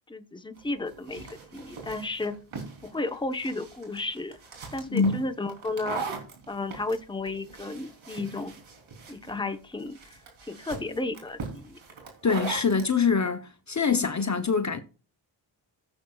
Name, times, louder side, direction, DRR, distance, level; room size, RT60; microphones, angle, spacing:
voice 1, 0.1-2.4 2.8-4.4 4.7-6.2 6.5-8.6 9.1-10.2 10.5-11.8, left 2 dB, 10° left, 1.0 m, -33 dB
sound 1, 0.6-12.9, right 4 dB, 85° right, 3.5 m, -40 dB
voice 2, 4.9-5.2 12.2-14.8, left 5 dB, 35° left, 0.9 m, -24 dB
16.0 x 7.6 x 2.4 m
cardioid pair, 80°, 47 cm